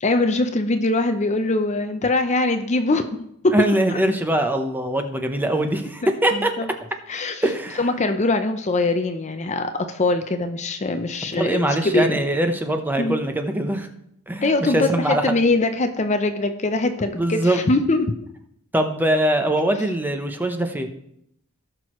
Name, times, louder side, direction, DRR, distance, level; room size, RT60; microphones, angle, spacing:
voice 1, 0.0-3.0 3.4-4.0 6.0-6.7 7.1-7.4 7.8-12.1 13.0-13.2 14.4-18.1, left 2 dB, 35° left, 8 dB, 0.6 m, -22 dB
voice 2, 3.5-6.5 7.4-7.8 11.4-13.9 14.3-15.2 17.1-17.6 18.7-20.9, right 1 dB, 10° right, 6 dB, 0.8 m, -22 dB
17.5 x 6.1 x 3.1 m, 0.75 s
head